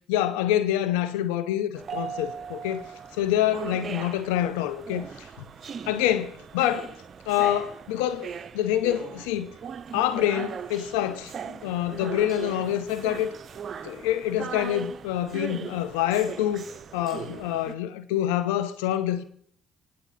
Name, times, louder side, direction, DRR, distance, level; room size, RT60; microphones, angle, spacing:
voice 1, 0.1-2.8 3.1-5.3 5.9-6.9 7.3-9.6 9.9-13.3 13.8-16.6 16.9-19.2, left 12 dB, 90° left, 0.8 m, -26 dB
sound 1, 1.7-17.7, right 7 dB, 50° right, 0.6 m, -39 dB
24.5 x 8.5 x 4.2 m
supercardioid pair, 65°, 0 cm